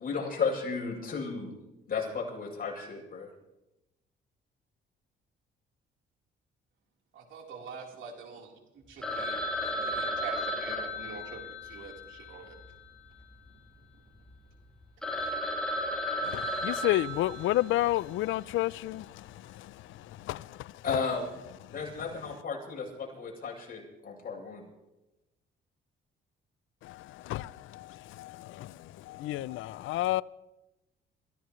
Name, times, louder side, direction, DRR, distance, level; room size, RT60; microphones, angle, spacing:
voice 1, 0.0-1.5 1.9-3.3 20.8-21.2 21.7-24.6, left 5 dB, 45° left, 7.9 m, -34 dB
voice 2, 7.1-12.6, right 5 dB, 75° right, 3.8 m, -45 dB
Telephone, 9.0-13.4 13.6-13.7 14.3-14.4 14.7-14.8 15.0-18.0, equal, 5° left, 3.4 m, -34 dB
voice 3, 16.2-20.7 21.6-21.8 26.8-30.2, left 16 dB, 85° left, 0.5 m, -32 dB
28.0 x 16.0 x 3.1 m
cardioid pair, 90°, 20 cm